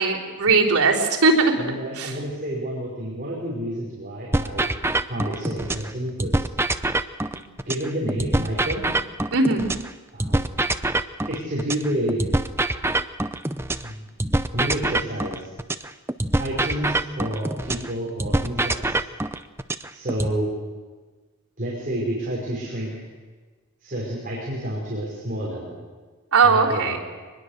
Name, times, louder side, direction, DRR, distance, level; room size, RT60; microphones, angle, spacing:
voice 1, 0.0-1.5 2.0-2.1 9.3-9.7 26.3-27.0, right 4 dB, 85° right, -6 dB, 3.7 m, -19 dB
voice 2, 1.6-4.7 5.1-6.4 7.7-8.8 10.1-10.5 11.3-12.2 13.8-14.1 14.5-15.5 16.4-18.9 19.9-20.5 21.6-23.0 23.8-25.7 26.4-27.0, right 1 dB, 40° right, -5 dB, 5.3 m, -29 dB
sound 1, 4.3-5.9 6.2-9.9 10.2-13.9 14.2-17.9 18.2-20.3, right 2 dB, 10° right, 0.6 m, -25 dB
24.0 x 21.0 x 6.7 m, 1.4 s
head